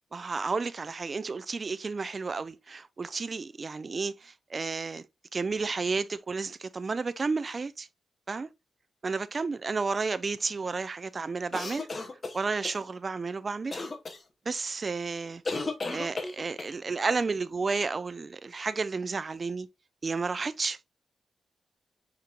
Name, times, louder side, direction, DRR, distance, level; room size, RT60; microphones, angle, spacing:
voice 1, 0.1-5.0 5.3-7.9 8.3-8.5 9.0-11.9 12.3-13.8 14.5-15.4 15.9-19.7 20.0-20.8, right 4 dB, 35° right, 0.4 m, -32 dB
sound 1, 11.5-12.8 13.7-14.2 15.4-16.7, left 3 dB, 35° left, 1.0 m, -34 dB
5.1 x 4.4 x 2.4 m
cardioid pair, 105°, 0 cm